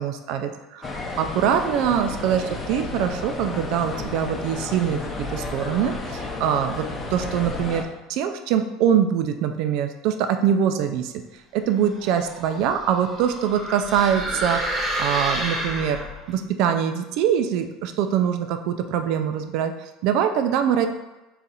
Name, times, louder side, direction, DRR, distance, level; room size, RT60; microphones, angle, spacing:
voice 1, 0.0-5.0 5.3-11.1 11.5-16.0 16.3-19.7 20.0-20.9, right 8 dB, 60° right, 7 dB, 0.3 m, -23 dB
sound 1, 0.8-7.8, left 3 dB, 25° left, 0.6 m, -32 dB
sound 2, 11.9-16.3, right 1 dB, 10° right, 0.8 m, -30 dB
3.9 x 2.4 x 4.1 m, 1.1 s
supercardioid pair, 130°, 0 cm